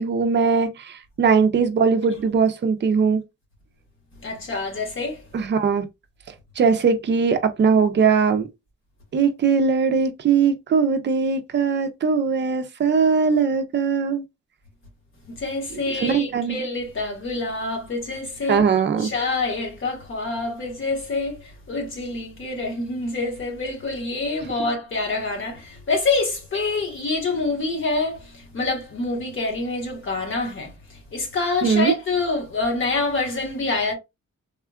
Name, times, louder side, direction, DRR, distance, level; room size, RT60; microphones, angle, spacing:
voice 1, 0.0-3.2 5.3-5.8 6.6-8.5 9.1-14.2 16.0-16.6 18.5-19.1 31.6-31.9, right 5 dB, 40° right, 0.4 m, -20 dB
voice 2, 4.2-5.2 15.3-18.6 19.0-33.9, left 3 dB, 45° left, 1.1 m, -26 dB
3.6 x 2.2 x 2.3 m
wide cardioid pair, 180°, 29 cm